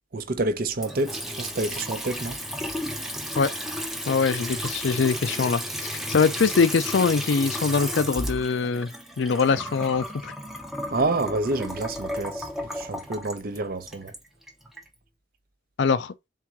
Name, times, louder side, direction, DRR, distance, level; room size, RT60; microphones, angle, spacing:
voice 1, 0.1-2.3 10.9-12.4 12.8-14.1, right 2 dB, 50° right, 0.6 m, -28 dB
Water tap faucet / Sink (filling or washing) / Trickle dribble, 0.8-14.9, equal, ahead, 0.6 m, -33 dB
voice 2, 4.1-5.6 6.1-8.9 9.2-10.3 15.8-16.1, left 5 dB, 70° left, 0.4 m, -23 dB
3.7 x 3.6 x 3.0 m
head